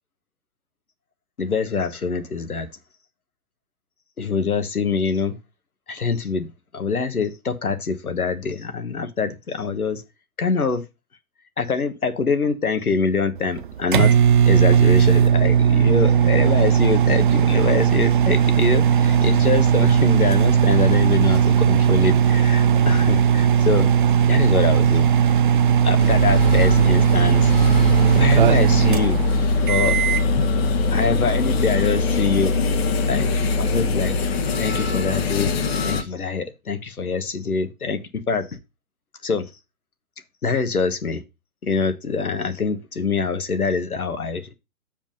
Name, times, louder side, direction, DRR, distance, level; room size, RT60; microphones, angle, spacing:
voice 1, 1.4-2.7 4.2-5.4 5.9-6.5 6.7-10.0 10.4-10.8 11.6-14.2 14.4-23.9 24.3-25.1 25.8-27.5 28.1-29.2 29.7-30.0 30.9-32.6 33.1-33.3 33.6-34.2 34.6-35.5 35.8-38.6 39.2-39.5 40.4-41.2 41.6-44.5, left 5 dB, 80° left, 1.4 m, -24 dB
sound 1, 13.3-30.3, right 8 dB, 35° right, 0.5 m, -17 dB
sound 2, 26.0-36.0, left 3 dB, 45° left, 1.3 m, -22 dB
7.2 x 5.1 x 5.3 m
figure-of-eight pair, 125°, 44 cm